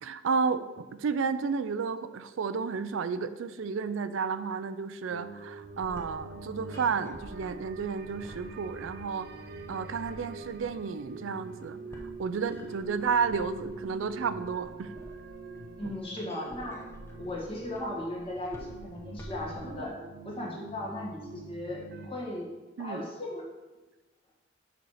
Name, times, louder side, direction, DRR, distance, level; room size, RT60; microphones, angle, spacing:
voice 1, 0.0-9.3 9.7-14.9 22.8-23.0, right 5 dB, 80° right, 12 dB, 0.4 m, -32 dB
sound 1, 5.1-22.1, right 3 dB, 50° right, 0.7 m, -45 dB
sound 2, 5.6-20.0, equal, 15° left, 0.8 m, -50 dB
voice 2, 15.8-16.8 17.2-19.9 20.2-22.5 22.8-23.4, left 1 dB, 30° left, -3 dB, 1.7 m, -37 dB
6.7 x 4.3 x 6.4 m, 1.2 s
head